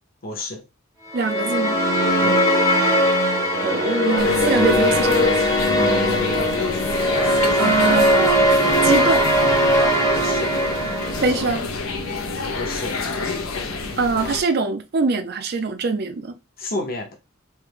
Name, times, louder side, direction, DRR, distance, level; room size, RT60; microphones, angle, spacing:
voice 1, 0.2-0.6 2.2-2.4 10.2-11.0 12.5-13.0 16.6-17.2, left 2 dB, 45° left, 0.8 m, -31 dB
sound 1, 1.1-11.5, equal, 15° left, 0.8 m, -19 dB
voice 2, 1.1-1.8 3.6-6.5 7.6-9.2 11.2-11.7 14.0-16.3, right 4 dB, 50° right, 0.5 m, -24 dB
sound 2, 4.2-14.4, left 4 dB, 75° left, 0.6 m, -28 dB
3.2 x 2.2 x 3.4 m
head